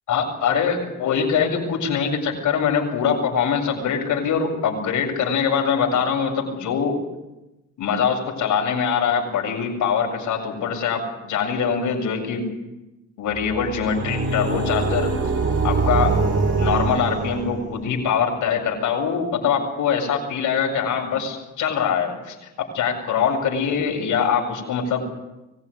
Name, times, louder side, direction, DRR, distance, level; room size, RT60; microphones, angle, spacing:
voice 1, 0.1-7.0 7.8-12.5 13.2-15.1 15.6-16.1 16.6-25.0, left 6 dB, 80° left, 1 dB, 7.5 m, -23 dB
sound 1, 13.3-18.0, right 4 dB, 50° right, 4.1 m, -23 dB
24.5 x 16.5 x 9.9 m, 1.0 s
cardioid pair, 90°, 30 cm